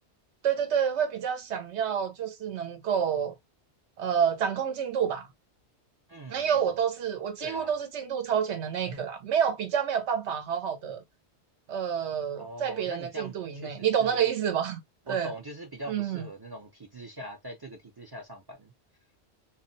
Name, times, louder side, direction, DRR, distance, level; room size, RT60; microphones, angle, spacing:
voice 1, 0.4-3.3 4.0-5.3 6.3-11.0 11.7-14.8 15.1-15.3 15.9-16.3, right 8 dB, 85° right, 1.0 m, -28 dB
voice 2, 6.1-6.7 7.4-7.8 12.4-14.2 15.1-18.7, right 1 dB, 35° right, 0.4 m, -42 dB
2.4 x 2.1 x 3.8 m
omnidirectional pair, 1.1 m